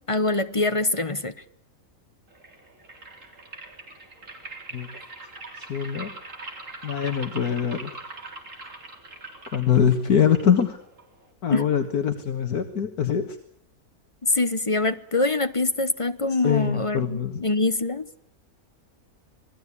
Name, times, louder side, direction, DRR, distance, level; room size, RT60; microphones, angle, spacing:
voice 1, 0.1-1.3 11.5-11.7 14.2-18.1, left 2 dB, 25° left, 0.9 m, -24 dB
sound 1, 2.3-11.3, right 2 dB, 55° right, 4.0 m, -42 dB
voice 2, 5.6-6.1 6.8-7.9 9.5-10.8 11.4-13.4 16.3-17.4, left 8 dB, 80° left, 2.0 m, -23 dB
27.5 x 19.5 x 8.5 m
omnidirectional pair, 1.6 m